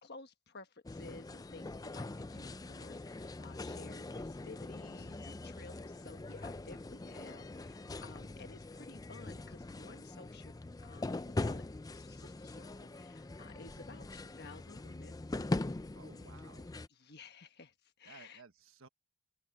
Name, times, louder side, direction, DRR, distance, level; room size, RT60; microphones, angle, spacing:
voice 1, 0.0-11.6 11.9-15.2 16.9-18.4, left 3 dB, 50° left, 1.3 m, -54 dB
sound 1, 0.9-16.9, left 2 dB, 15° left, 0.4 m, -42 dB
voice 2, 1.9-2.5 7.0-7.5 13.5-14.2 15.9-16.7 18.0-18.9, right 4 dB, 65° right, 1.3 m, -59 dB
head